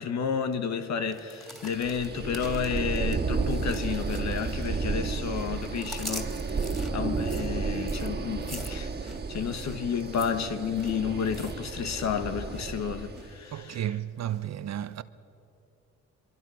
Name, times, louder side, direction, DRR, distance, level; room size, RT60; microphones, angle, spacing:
voice 1, 0.0-6.6 6.9-14.0, left 7 dB, 65° left, 1.4 m, -31 dB
sound 1, 1.1-4.9 5.2-12.1 12.4-12.7 13.1-13.8 14.3-14.4, equal, ahead, 3.1 m, -45 dB
sound 2, 1.6-13.4, right 4 dB, 35° right, 1.9 m, -32 dB
voice 2, 13.5-15.0, right 11 dB, 60° right, 0.9 m, -33 dB
23.5 x 23.5 x 6.4 m
cardioid pair, 90°, 30 cm